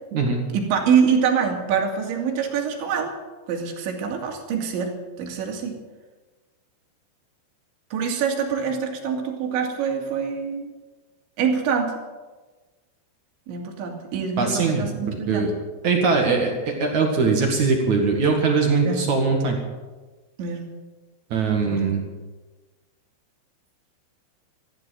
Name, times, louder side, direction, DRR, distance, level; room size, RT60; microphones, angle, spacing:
voice 1, 0.5-3.1 3.5-5.8 7.9-10.7 11.4-11.9 13.5-15.5 18.8-19.0 20.4-20.7 21.6-21.9, right 6 dB, 70° right, 2 dB, 4.5 m, -25 dB
voice 2, 14.4-15.5 15.8-19.6 21.3-22.0, right 4 dB, 50° right, 2 dB, 2.4 m, -21 dB
15.0 x 12.5 x 7.8 m, 1.3 s
omnidirectional pair, 5.7 m